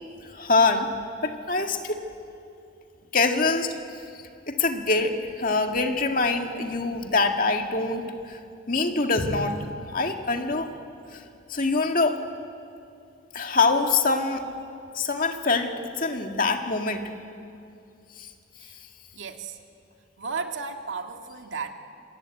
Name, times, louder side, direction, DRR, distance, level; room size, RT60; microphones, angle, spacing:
voice 1, 0.2-0.9 1.2-2.0 3.1-4.0 4.5-8.4 8.7-10.7 11.1-11.2 11.5-12.2 13.3-14.4 14.9-17.1 18.2-18.3, left 3 dB, 45° left, 4 dB, 2.0 m, -24 dB
voice 2, 19.1-19.6 20.2-21.7, right 4 dB, 75° right, 4 dB, 2.0 m, -34 dB
27.0 x 22.0 x 9.1 m, 2.5 s
head